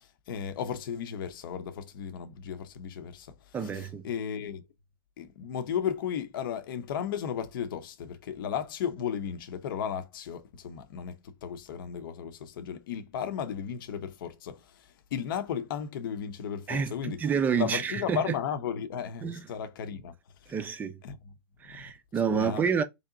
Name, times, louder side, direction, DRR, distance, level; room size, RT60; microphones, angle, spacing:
voice 1, 0.0-3.3 3.6-4.6 5.2-17.2 17.6-20.1 21.0-21.2 21.7-21.8 22.3-22.7, left 8 dB, 60° left, 0.7 m, -35 dB
voice 2, 3.5-4.1 16.7-18.3 19.2-19.5 20.5-21.0 21.6-22.8, right 6 dB, 15° right, 0.4 m, -29 dB
3.3 x 2.8 x 3.7 m
hypercardioid pair, 145°, 12 cm